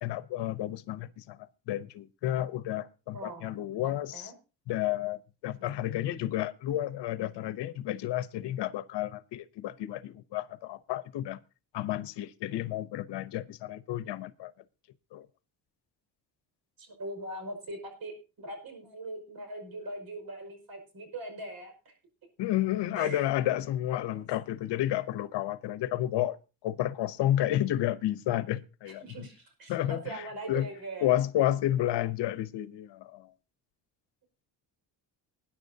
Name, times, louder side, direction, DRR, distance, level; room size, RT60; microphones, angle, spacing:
voice 1, 0.0-4.3 4.7-11.4 11.7-14.5 15.1-15.3 22.4-26.4 26.6-29.3 29.7-30.7 31.0-33.3, left 13 dB, 75° left, 16 dB, 0.9 m, -31 dB
voice 2, 3.1-3.5 4.1-4.3 5.6-5.9 16.8-21.9 23.0-23.3 24.1-24.2 28.9-31.1, right 2 dB, 55° right, 5 dB, 5.4 m, -41 dB
20.0 x 10.0 x 2.8 m, 0.31 s
cardioid pair, 110°, 42 cm